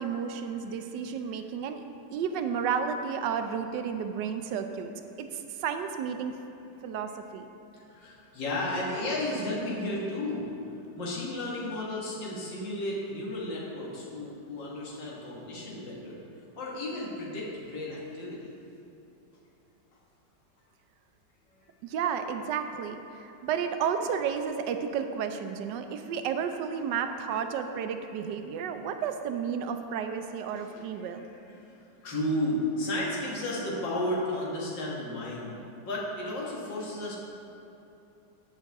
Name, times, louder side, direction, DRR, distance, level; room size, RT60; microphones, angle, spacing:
voice 1, 0.0-1.8 2.1-4.9 5.2-6.4 6.8-7.5 21.8-31.3, right 7 dB, 80° right, 7 dB, 1.2 m, -32 dB
voice 2, 7.7-10.4 10.9-16.2 16.6-18.5 30.6-30.8 31.2-31.3 31.5-31.7 32.0-37.2, left 1 dB, 85° left, -5 dB, 2.3 m, -33 dB
13.5 x 5.7 x 3.5 m, 2.8 s
omnidirectional pair, 1.9 m